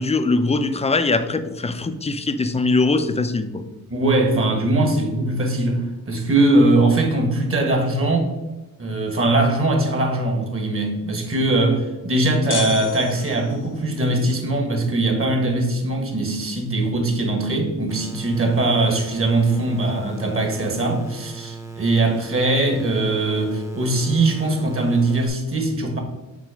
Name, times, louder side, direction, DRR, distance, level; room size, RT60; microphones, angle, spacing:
voice 1, 0.0-3.6, left 3 dB, 20° left, 10 dB, 0.5 m, -21 dB
voice 2, 3.9-8.3 8.8-26.0, right 2 dB, 35° right, 4 dB, 1.4 m, -21 dB
sound 1, 12.5-13.8, left 7 dB, 60° left, 0.9 m, -32 dB
sound 2, 17.9-25.3, right 4 dB, 10° right, 0.8 m, -37 dB
6.1 x 3.9 x 5.0 m, 1.1 s
cardioid pair, 95°, 36 cm